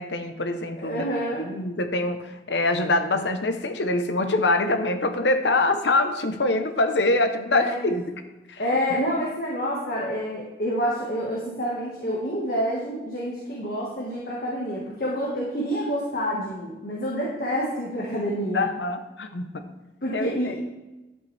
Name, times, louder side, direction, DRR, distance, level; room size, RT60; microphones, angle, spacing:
voice 1, 0.0-1.0 1.4-8.0 8.5-8.6 18.5-19.7 20.1-20.6, left 2 dB, 70° left, 7 dB, 0.9 m, -24 dB
voice 2, 0.8-1.5 7.5-7.8 8.6-18.6 20.0-20.6, equal, 50° left, -5 dB, 1.6 m, -28 dB
11.0 x 8.0 x 3.4 m, 1.1 s
head